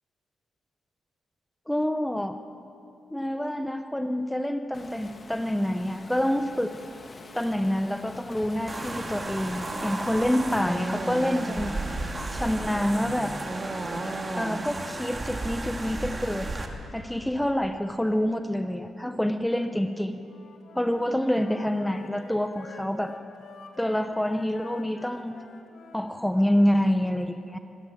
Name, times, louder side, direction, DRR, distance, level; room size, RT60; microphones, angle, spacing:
voice 1, 1.7-2.4 3.1-6.8 7.3-11.8 12.3-13.3 14.3-16.5 16.9-20.2 20.7-23.1 23.8-25.4 25.9-27.6, equal, 5° left, 8 dB, 0.8 m, -27 dB
Waves surf, 4.7-13.5, left 3 dB, 30° left, 1.4 m, -46 dB
sound 1, 8.7-16.7, right 2 dB, 25° right, 2.2 m, -33 dB
Wind instrument woodwind instrument, 20.2-26.5, left 5 dB, 65° left, 2.1 m, -47 dB
24.5 x 17.0 x 9.1 m, 2.8 s
cardioid pair, 120°, 0 cm